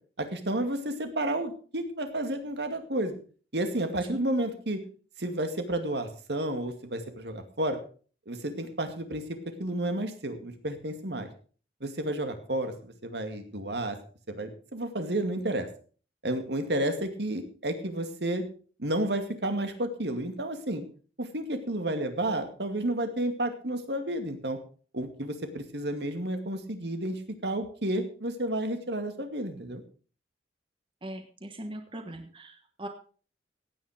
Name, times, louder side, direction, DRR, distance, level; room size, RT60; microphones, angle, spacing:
voice 1, 0.2-3.1 3.5-4.8 5.2-7.8 8.3-11.3 11.8-14.0 14.4-15.7 16.2-18.4 18.8-20.8 21.2-24.6 24.9-29.8, right 1 dB, 70° right, 7 dB, 2.3 m, -31 dB
voice 2, 31.0-32.9, right 1 dB, 30° right, 5 dB, 1.4 m, -40 dB
16.5 x 9.3 x 5.1 m, 0.41 s
head